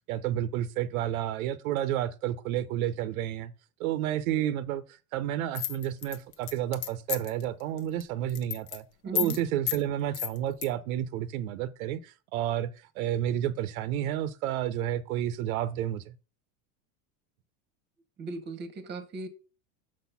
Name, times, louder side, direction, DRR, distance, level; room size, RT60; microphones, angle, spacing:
voice 1, 0.1-3.5 3.8-8.8 9.1-16.1, right 11 dB, 75° right, 0.7 m, -31 dB
sound 1, 5.6-7.4 7.8-8.0 8.3-8.8 9.2-9.4 9.7-9.8 10.1-10.7, left 11 dB, 80° left, 1.1 m, -31 dB
voice 2, 9.0-9.4 18.2-19.3, right 4 dB, 25° right, 1.0 m, -37 dB
6.5 x 4.1 x 5.6 m
supercardioid pair, 140°, 42 cm